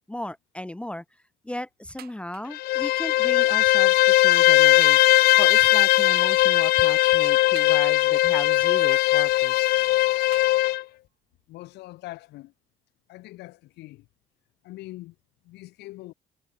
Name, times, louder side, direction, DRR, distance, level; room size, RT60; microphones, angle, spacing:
voice 1, 0.1-1.0 1.4-5.0 5.4-9.8, left 1 dB, 5° left, 0.7 m, -36 dB
sound 1, 2.0-2.7 3.4-3.7 4.3-4.4 4.8-5.2 6.2-6.5 7.6-8.2 8.9-9.5 10.3-11.0 11.8-11.9 12.2-12.3, right 13 dB, 65° right, 3.3 m, -49 dB
Bowed string instrument, 2.5-10.8, left 17 dB, 70° left, 0.4 m, -19 dB
voice 2, 11.5-12.5 13.1-14.1 14.6-15.1 15.4-16.1, left 18 dB, 85° left, 4.6 m, -42 dB
cardioid pair, 110°, 17 cm